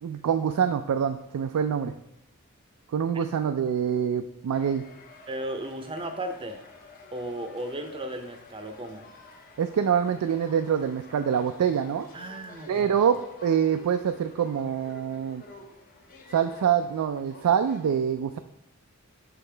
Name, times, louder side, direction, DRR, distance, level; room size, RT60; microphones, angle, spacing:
voice 1, 0.0-1.9 2.9-4.8 9.6-12.1 12.7-13.2 13.4-15.4 16.3-18.4, right 8 dB, 90° right, 8 dB, 0.3 m, -25 dB
sound 1, 4.5-17.9, left 2 dB, 40° left, 0.8 m, -50 dB
voice 2, 5.3-6.6 7.1-9.0 12.1-13.0, right 1 dB, 25° right, 6 dB, 0.6 m, -35 dB
6.7 x 5.2 x 3.3 m, 0.79 s
head